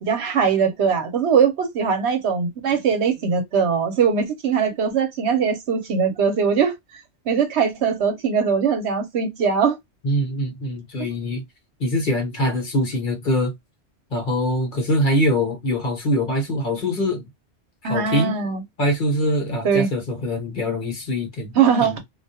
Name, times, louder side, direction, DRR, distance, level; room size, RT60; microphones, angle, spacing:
voice 1, 0.0-6.7 7.3-9.8 17.8-18.6 19.6-19.9 21.6-22.0, right 6 dB, 70° right, 0.9 m, -21 dB
voice 2, 10.0-11.4 11.8-13.5 14.1-17.3 17.8-18.3 18.8-21.5 21.8-22.0, left 1 dB, 45° left, 1.1 m, -23 dB
2.4 x 2.2 x 2.7 m
omnidirectional pair, 1.2 m